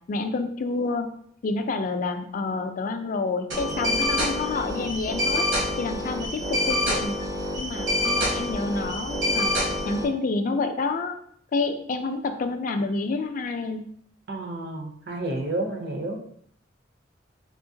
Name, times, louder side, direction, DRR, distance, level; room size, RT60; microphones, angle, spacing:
voice 1, 0.1-1.1 1.4-5.5 5.8-7.2 7.6-9.6 9.8-11.2 11.5-13.8, left 3 dB, 45° left, 7 dB, 0.3 m, -28 dB
sound 1, 3.5-10.0, left 1 dB, 75° right, 1.4 m, -26 dB
voice 2, 14.3-16.2, right 2 dB, 55° right, 3 dB, 0.6 m, -30 dB
3.7 x 2.7 x 2.6 m, 0.65 s
head